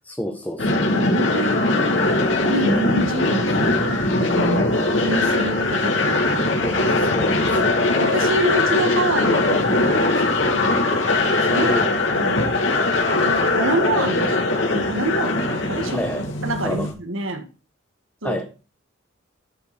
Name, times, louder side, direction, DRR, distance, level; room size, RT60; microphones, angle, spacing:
voice 1, 0.0-0.8 6.6-7.7 11.6-11.9 15.9-16.3 16.6-16.9 18.2-18.4, equal, 10° left, 1 dB, 1.4 m, -29 dB
sound 1, 0.6-16.9, left 2 dB, 75° left, 3.0 m, -20 dB
voice 2, 0.9-2.0 2.5-4.7 5.0-6.6 7.5-7.6 8.0-10.7 11.5-11.7 12.1-12.7 13.0-14.5 14.7-16.0 16.4-17.5 18.2-18.4, right 1 dB, 90° right, 7 dB, 2.1 m, -27 dB
12.0 x 6.3 x 4.4 m, 0.34 s
head